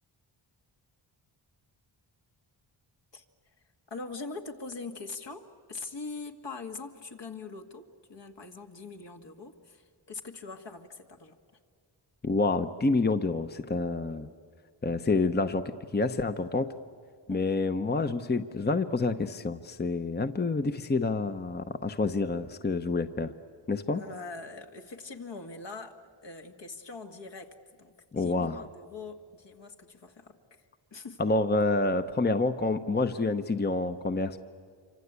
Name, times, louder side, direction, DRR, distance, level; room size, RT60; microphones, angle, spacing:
voice 1, 3.9-11.4 17.3-17.4 23.9-26.0 26.2-27.5 27.8-30.6 30.9-31.2, left 4 dB, 60° left, 4 dB, 2.2 m, -42 dB
voice 2, 12.2-14.3 14.8-15.6 15.9-16.7 17.3-23.3 23.7-24.0 28.1-28.6 31.2-34.4, left 3 dB, 20° left, 9 dB, 0.8 m, -28 dB
27.0 x 25.0 x 8.3 m, 2.1 s
cardioid pair, 75°, 47 cm